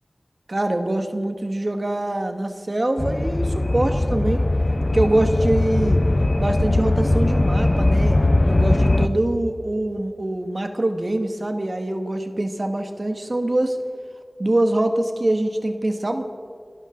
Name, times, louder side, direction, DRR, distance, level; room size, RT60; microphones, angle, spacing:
voice 1, 0.5-4.4 4.9-6.0 6.4-8.2 8.5-13.8 14.4-16.2, right 1 dB, 50° right, 6 dB, 1.6 m, -24 dB
sound 1, 3.0-9.1, left 2 dB, 45° left, 0.8 m, -20 dB
27.0 x 13.0 x 3.9 m, 2.3 s
wide cardioid pair, 45°, 0 cm